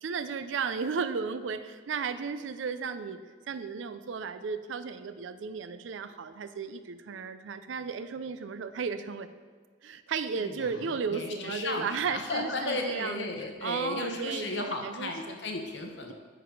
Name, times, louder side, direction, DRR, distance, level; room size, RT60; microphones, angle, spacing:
voice 1, 0.0-3.2 3.5-9.3 9.8-13.3 13.6-15.3, right 5 dB, 90° right, 12 dB, 0.4 m, -34 dB
voice 2, 10.4-16.1, left 2 dB, 70° left, 3 dB, 1.0 m, -35 dB
9.3 x 4.0 x 4.7 m, 1.5 s
head